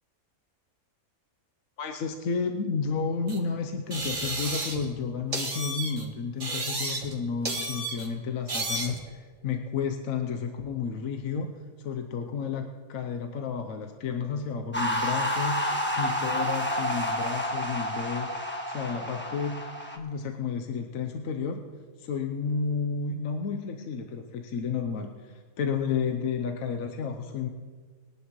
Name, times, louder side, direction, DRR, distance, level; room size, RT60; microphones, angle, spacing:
voice 1, 1.8-11.5 11.8-19.6 19.9-21.6 22.0-27.5, left 5 dB, 70° left, 5 dB, 1.2 m, -32 dB
sound 1, 3.3-3.4 3.9-4.9 5.3-6.1 6.4-7.2 7.5-8.1 8.5-9.0, right 2 dB, 60° right, 2.2 m, -32 dB
sound 2, 14.7-20.0, equal, 10° left, 1.3 m, -29 dB
21.5 x 11.0 x 3.1 m, 1.5 s
omnidirectional pair, 1.5 m